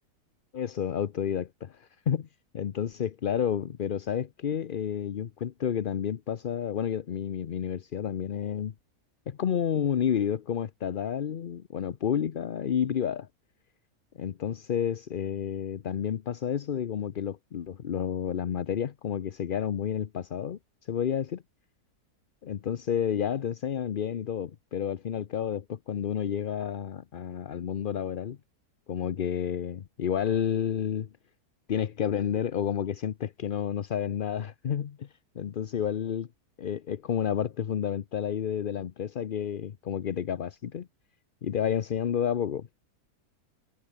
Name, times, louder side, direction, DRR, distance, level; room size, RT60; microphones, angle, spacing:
voice 1, 0.5-2.3 2.5-8.7 9.3-13.3 14.1-20.6 20.9-21.4 22.4-28.4 28.9-31.1 31.7-35.1 35.3-36.3 36.6-40.9 41.4-42.7, left 8 dB, 50° left, 0.6 m, -30 dB
omnidirectional pair, 1.6 m